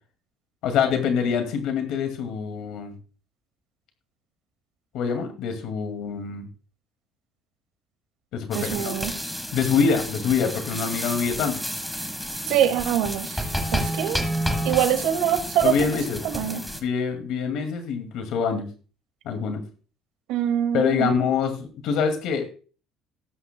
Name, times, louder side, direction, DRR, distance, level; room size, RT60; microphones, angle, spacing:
voice 1, 0.6-2.9 4.9-6.5 8.3-9.0 9.5-11.6 15.6-16.2 16.8-18.7 19.3-19.6 20.7-22.5, left 6 dB, 60° left, 6 dB, 2.2 m, -25 dB
sound 1, 8.5-16.8, equal, ahead, 1.4 m, -30 dB
voice 2, 8.5-9.1 12.5-14.2 14.6-15.7 16.2-16.6 20.3-21.3, right 10 dB, 75° right, 8 dB, 2.0 m, -24 dB
18.0 x 9.5 x 2.2 m, 0.36 s
cardioid pair, 175°, 0 cm